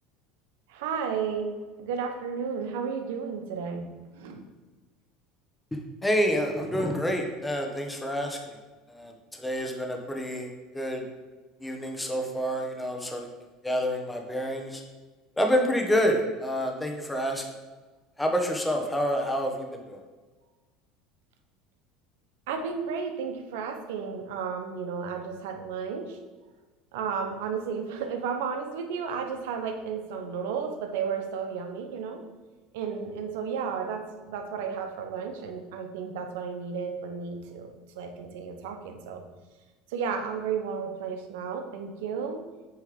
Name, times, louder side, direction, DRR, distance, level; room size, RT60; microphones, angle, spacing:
voice 1, 0.7-1.5 1.8-3.9 4.1-4.4 22.5-26.2 26.9-32.2 32.7-39.2 39.9-42.4, right 6 dB, 80° right, 5 dB, 0.9 m, -33 dB
voice 2, 6.0-8.6 8.9-10.5 10.7-11.0 11.6-13.3 13.6-14.8 15.4-17.4 18.2-20.0, equal, 10° left, 3 dB, 1.1 m, -28 dB
8.4 x 3.2 x 5.1 m, 1.3 s
supercardioid pair, 110°, 0 cm